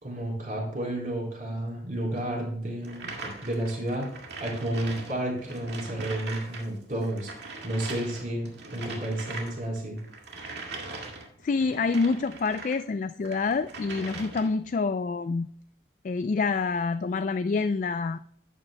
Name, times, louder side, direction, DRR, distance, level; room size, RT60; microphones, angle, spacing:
voice 1, 0.0-4.1 4.4-7.3 7.6-10.0, right 1 dB, 45° right, -2 dB, 3.9 m, -31 dB
sound 1, 2.8-12.8 13.2-14.7, right 3 dB, 65° right, 2.0 m, -41 dB
voice 2, 11.4-15.5 16.0-18.2, left 4 dB, 45° left, 11 dB, 0.3 m, -27 dB
12.5 x 8.9 x 2.2 m, 0.64 s
head